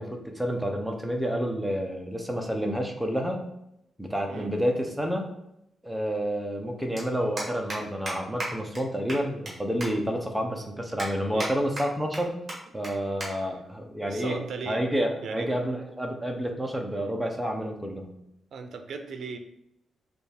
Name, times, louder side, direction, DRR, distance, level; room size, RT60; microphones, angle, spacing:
voice 1, 0.0-3.5 4.0-5.3 5.8-12.4 12.7-14.4 14.7-18.2, equal, 5° right, 2 dB, 0.6 m, -29 dB
sound 1, 4.7-4.8 6.2-6.3 6.5-6.7 7.0-7.1 7.4-7.8 8.1-8.2 8.4-8.5 8.7-8.8 9.1-9.5 9.8-9.9 10.4-10.5 11.0-11.5 11.8-12.2 12.5-12.6 12.8-12.9 13.2-13.3 13.6-13.8 14.6-14.9, right 1 dB, 25° right, 1.5 m, -34 dB
voice 2, 14.0-14.8 15.2-15.5 18.5-19.4, right 4 dB, 65° right, 6 dB, 0.5 m, -37 dB
6.6 x 2.4 x 3.4 m, 0.82 s
wide cardioid pair, 165°, 0 cm